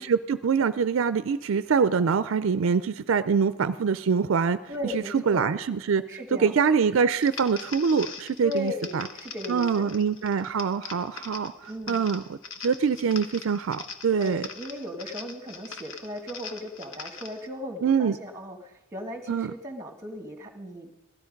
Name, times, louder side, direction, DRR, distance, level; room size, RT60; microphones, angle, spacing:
voice 1, 0.0-4.6 4.9-6.0 6.4-9.1 9.5-12.4 12.6-14.4 17.8-18.2 19.3-19.5, right 6 dB, 65° right, 13 dB, 0.4 m, -24 dB
voice 2, 4.7-5.5 6.1-6.6 8.4-9.9 11.7-12.0 14.1-20.9, left 1 dB, 15° right, 5 dB, 1.4 m, -36 dB
sound 1, 7.2-17.5, left 5 dB, 65° left, 1.0 m, -42 dB
16.0 x 13.0 x 5.2 m, 0.99 s
head